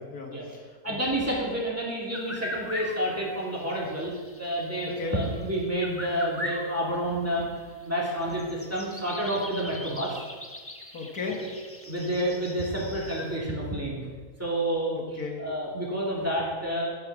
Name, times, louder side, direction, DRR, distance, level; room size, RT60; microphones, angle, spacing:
voice 1, 0.0-1.2 4.8-5.1 10.9-11.4 14.9-15.4, left 4 dB, 70° left, 1 dB, 1.8 m, -36 dB
voice 2, 0.8-7.5 7.8-10.2 11.4-11.5 11.8-14.1 14.4-15.0 15.4-16.9, right 1 dB, 10° right, -5 dB, 2.7 m, -29 dB
sound 1, 2.1-13.4, left 1 dB, 10° left, 1.0 m, -41 dB
11.5 x 7.8 x 6.1 m, 1.4 s
omnidirectional pair, 1.6 m